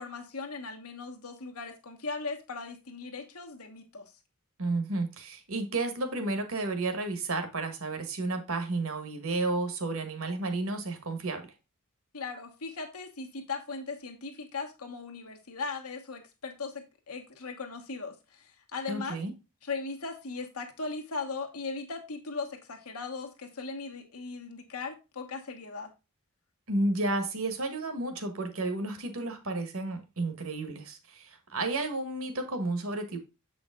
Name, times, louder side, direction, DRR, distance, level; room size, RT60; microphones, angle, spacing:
voice 1, 0.0-4.1 12.1-19.2 19.6-25.9, left 4 dB, 80° left, 1.2 m, -38 dB
voice 2, 4.6-11.4 18.9-19.3 26.7-33.2, right 2 dB, 65° right, 1.5 m, -32 dB
7.7 x 5.1 x 3.6 m
head